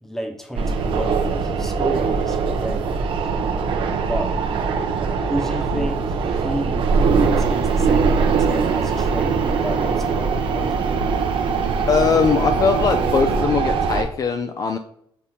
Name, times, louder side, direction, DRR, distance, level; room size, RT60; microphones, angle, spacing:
voice 1, 0.0-3.3 4.1-4.4 4.9-11.1, right 1 dB, 5° left, 3 dB, 1.0 m, -31 dB
sound 1, 0.6-14.0, right 5 dB, 70° right, 0.7 m, -21 dB
sound 2, 7.1-13.4, right 9 dB, 10° right, 0.5 m, -37 dB
voice 2, 11.9-14.8, left 6 dB, 40° left, 6 dB, 0.4 m, -20 dB
6.3 x 2.7 x 5.6 m, 0.71 s
cardioid pair, 135°, 9 cm